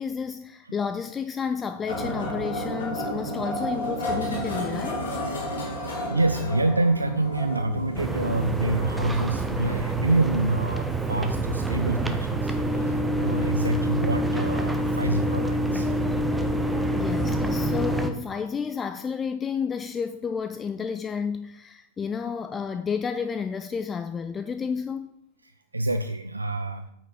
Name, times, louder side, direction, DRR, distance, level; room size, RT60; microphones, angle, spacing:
voice 1, 0.0-5.0 16.9-25.1, left 6 dB, 20° left, 0.3 m, -31 dB
sound 1, 1.9-15.1, equal, 65° left, 2.3 m, -34 dB
voice 2, 6.1-15.9 25.4-26.9, right 2 dB, 80° right, 0.3 m, -27 dB
sound 2, 7.9-18.1, right 1 dB, 5° right, 0.7 m, -26 dB
8.7 x 5.1 x 4.3 m
figure-of-eight pair, 90°, 0 cm